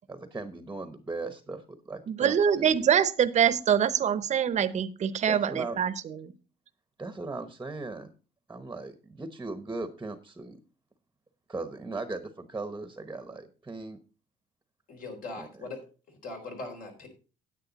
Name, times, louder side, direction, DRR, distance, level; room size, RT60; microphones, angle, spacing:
voice 1, 0.1-2.7 5.3-5.8 7.0-8.1 8.5-10.6 11.5-14.0 15.3-15.5, right 3 dB, 15° right, 10 dB, 1.0 m, -38 dB
voice 2, 2.1-6.3, right 8 dB, 45° right, 14 dB, 0.8 m, -25 dB
voice 3, 14.9-15.8 16.1-17.1, left 3 dB, 55° left, 3 dB, 3.7 m, -40 dB
10.0 x 8.6 x 4.1 m, 0.35 s
cardioid pair, 110°, 17 cm